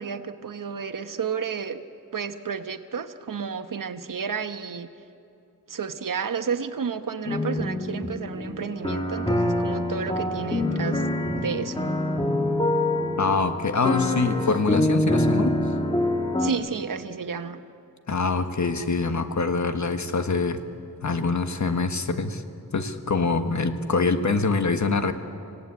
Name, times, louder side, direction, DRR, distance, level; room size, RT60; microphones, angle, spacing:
voice 1, 0.0-1.8 2.1-4.9 5.7-11.0 11.3-11.8 16.4-17.6, right 6 dB, 70° right, 9 dB, 1.3 m, -31 dB
sound 1, 7.3-16.5, left 1 dB, 15° left, 2.1 m, -25 dB
voice 2, 13.2-15.6 18.1-20.6 21.0-22.4 22.7-25.1, left 4 dB, 55° left, 8 dB, 1.6 m, -24 dB
25.5 x 17.0 x 9.8 m, 2.6 s
wide cardioid pair, 75°, 34 cm